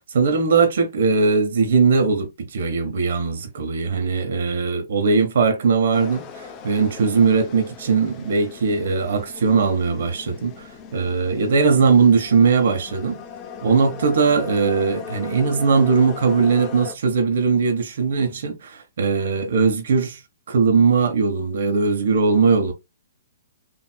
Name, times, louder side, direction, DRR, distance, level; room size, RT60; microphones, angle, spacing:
voice 1, 0.0-13.2 13.6-20.2 20.5-22.7, right 5 dB, 65° right, 1.3 m, -19 dB
sound 1, 5.9-16.9, left 7 dB, 30° left, 0.6 m, -38 dB
4.6 x 3.1 x 2.3 m
hypercardioid pair, 135°, 0 cm